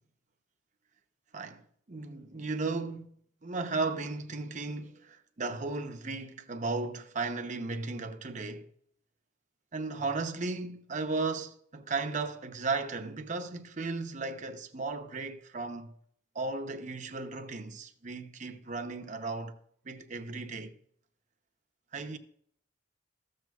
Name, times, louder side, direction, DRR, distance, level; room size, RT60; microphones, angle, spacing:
voice 1, 1.3-8.7 9.7-15.9 16.3-19.6 19.8-20.7 21.9-22.2, right 3 dB, 45° right, 0.8 m, -35 dB
14.0 x 7.7 x 2.4 m
head